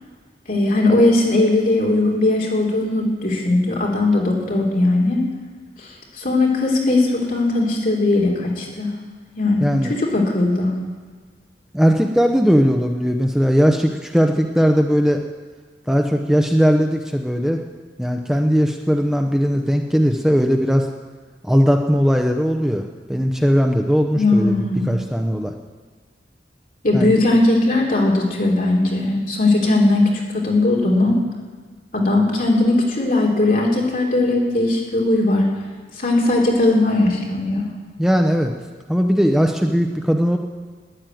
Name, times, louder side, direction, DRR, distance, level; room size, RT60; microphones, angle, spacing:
voice 1, 0.5-5.2 6.2-8.9 9.4-10.7 24.2-24.8 26.8-31.1 31.9-35.5 36.0-37.6, left 2 dB, 50° left, -2 dB, 3.4 m, -18 dB
voice 2, 9.6-9.9 11.7-15.2 15.9-17.6 18.0-20.9 21.4-22.8 23.1-25.5 26.9-27.1 38.0-38.5 38.9-40.4, equal, 5° right, 3 dB, 0.7 m, -18 dB
12.5 x 10.5 x 9.1 m, 1.5 s
head